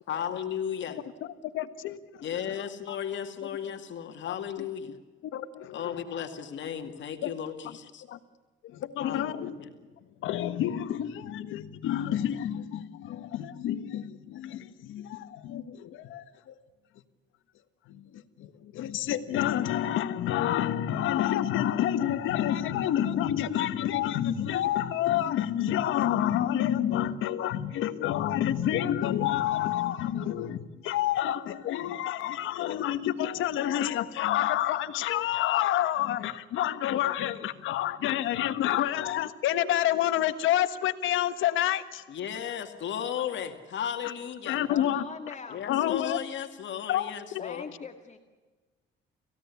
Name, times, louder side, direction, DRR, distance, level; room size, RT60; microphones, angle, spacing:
voice 1, 0.1-1.0 2.2-5.0 5.7-8.0 9.0-9.6 42.1-44.6 45.5-47.6, left 9 dB, 70° left, 5 dB, 2.3 m, -35 dB
voice 2, 0.9-2.7 4.2-4.4 5.2-5.9 7.2-7.3 8.1-8.2 8.6-9.5 10.2-16.5 17.9-42.0 44.5-45.0 45.7-46.2 46.9-47.4, left 11 dB, 85° left, 11 dB, 1.5 m, -29 dB
voice 3, 44.6-45.6 47.4-48.2, left 5 dB, 35° left, 5 dB, 1.9 m, -41 dB
28.5 x 16.5 x 8.4 m, 1.3 s
cardioid pair, 90°, 20 cm